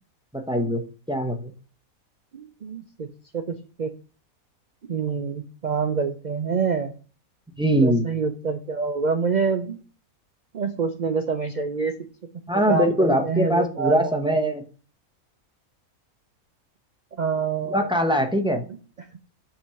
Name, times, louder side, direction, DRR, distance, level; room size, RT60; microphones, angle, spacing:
voice 1, 0.3-0.8 1.1-1.5 7.6-8.1 12.5-14.6 17.6-18.6, equal, 5° right, 5 dB, 0.5 m, -22 dB
voice 2, 2.3-3.9 4.8-6.9 7.8-9.8 10.5-11.9 12.7-14.1 17.2-17.9, right 5 dB, 85° right, 7 dB, 0.4 m, -26 dB
5.6 x 3.7 x 5.6 m, 0.37 s
omnidirectional pair, 1.5 m